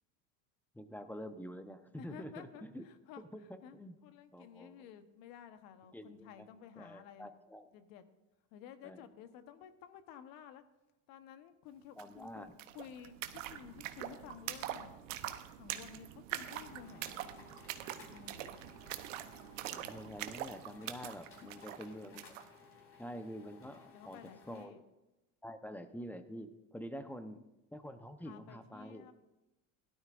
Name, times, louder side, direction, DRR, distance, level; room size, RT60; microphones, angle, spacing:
voice 1, 0.7-2.8 3.2-4.0 4.3-4.9 5.9-6.5 6.8-7.7 8.8-9.0 12.0-12.5 19.7-22.3 23.0-24.2 24.5-24.8 25.4-27.4 27.7-29.1, equal, 5° left, 9 dB, 0.8 m, -47 dB
voice 2, 2.0-3.2 3.6-3.8 4.0-7.3 7.7-8.0 8.5-10.6 11.1-14.9 15.6-17.3 17.8-18.6 23.9-24.8 26.9-27.4 28.2-29.1, left 9 dB, 65° left, 10 dB, 1.2 m, -53 dB
sound 1, 12.0-12.1 12.3-22.5, right 12 dB, 85° right, 0.9 m, -44 dB
sound 2, 16.4-24.7, left 5 dB, 35° left, 3.1 m, -59 dB
17.0 x 12.5 x 2.5 m, 1.0 s
supercardioid pair, 100°, 38 cm